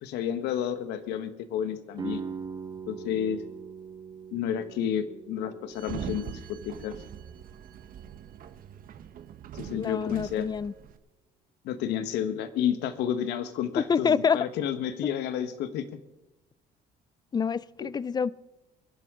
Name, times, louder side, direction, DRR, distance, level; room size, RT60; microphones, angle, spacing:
voice 1, 0.0-2.2 2.9-3.4 4.3-6.9 9.5-10.5 11.6-15.8 17.8-17.9, left 9 dB, 85° left, 11 dB, 1.3 m, -31 dB
sound 1, 2.0-7.7, right 5 dB, 25° right, 1.6 m, -41 dB
Sliding door, 5.7-11.0, right 9 dB, 55° right, 1.1 m, -42 dB
voice 2, 9.6-10.7 13.8-14.4 15.0-15.1 17.3-18.3, left 6 dB, 25° left, 21 dB, 0.4 m, -27 dB
23.5 x 11.0 x 3.7 m, 0.98 s
cardioid pair, 110°, 17 cm